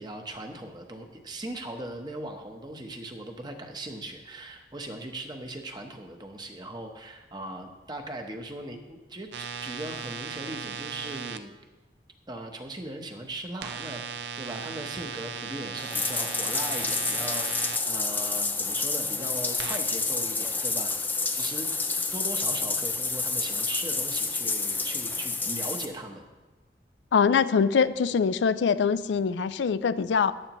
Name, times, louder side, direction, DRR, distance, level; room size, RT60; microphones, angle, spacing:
voice 1, 0.0-11.5 12.3-14.0 14.4-21.7 22.1-26.2, right 1 dB, 25° right, 4 dB, 0.9 m, -39 dB
sound 1, 9.3-11.4 13.6-17.8 19.6-19.8, right 6 dB, 75° right, 0.5 m, -37 dB
Bathtub (filling or washing), 15.8-25.8, left 3 dB, 10° left, 0.4 m, -29 dB
voice 2, 27.1-30.3, left 6 dB, 85° left, 13 dB, 0.4 m, -23 dB
14.0 x 10.0 x 3.0 m, 1.2 s
head